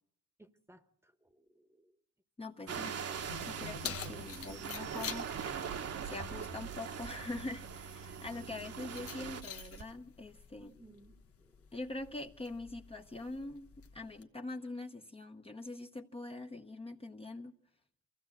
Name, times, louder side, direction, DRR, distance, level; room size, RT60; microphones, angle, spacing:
voice 1, 0.4-1.9 2.6-2.9 10.6-11.7, right 2 dB, 10° right, 1.2 m, -60 dB
voice 2, 2.4-2.9 3.4-5.3 6.0-10.7 11.7-17.5, left 2 dB, 20° left, 1.0 m, -44 dB
sound 1, 2.7-9.4, right 7 dB, 55° right, 1.3 m, -42 dB
sound 2, 3.2-9.9, right 4 dB, 75° right, 2.1 m, -50 dB
Keys jangling, 3.3-14.2, left 7 dB, 50° left, 1.2 m, -49 dB
23.5 x 15.0 x 7.6 m
cardioid pair, 90°, 30 cm